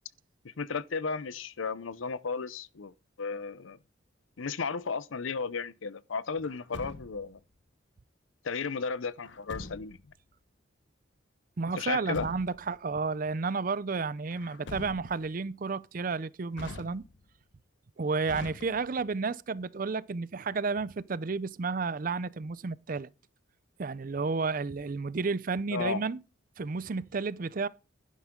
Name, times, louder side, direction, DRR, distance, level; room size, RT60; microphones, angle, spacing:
voice 1, 0.4-2.9 3.2-3.8 4.4-7.4 8.4-10.0 11.8-12.3 25.7-26.0, left 5 dB, 90° left, 0.7 m, -34 dB
Truck, 6.4-7.4 9.2-10.1 11.7-12.7 14.3-15.3 16.5-17.4 18.2-19.1, left 2 dB, 65° left, 1.1 m, -45 dB
voice 2, 11.6-17.0 18.0-23.1 23.8-26.2 26.6-27.7, right 4 dB, 45° right, 0.5 m, -32 dB
11.5 x 10.5 x 3.7 m
head